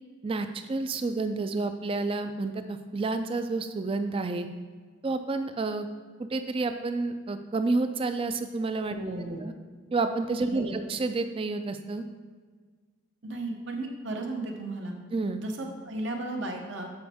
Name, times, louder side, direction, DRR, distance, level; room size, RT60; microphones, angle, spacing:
voice 1, 0.2-4.5 5.0-5.9 6.2-8.9 9.4-9.5 9.9-12.0 15.1-15.4, right 3 dB, 25° right, 9 dB, 0.3 m, -29 dB
voice 2, 8.9-9.4 10.4-10.8 13.2-14.9 15.4-16.9, right 2 dB, 65° right, 1 dB, 0.9 m, -35 dB
7.8 x 5.0 x 3.5 m, 1.5 s
head